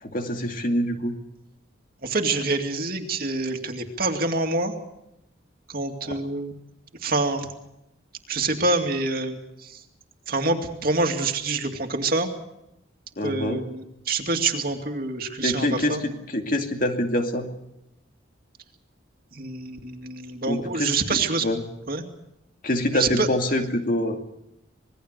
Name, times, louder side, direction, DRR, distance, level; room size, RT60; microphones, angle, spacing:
voice 1, 0.0-1.2 6.0-6.1 13.2-13.6 15.4-17.5 20.5-21.7 22.6-24.2, left 1 dB, 45° left, 4 dB, 2.4 m, -25 dB
voice 2, 2.0-4.7 5.7-6.5 7.0-7.5 8.3-9.4 10.3-12.3 13.2-16.0 19.3-21.4 21.9-22.0 22.9-23.3, right 3 dB, 50° right, 4 dB, 2.4 m, -26 dB
26.0 x 20.5 x 6.8 m, 0.86 s
head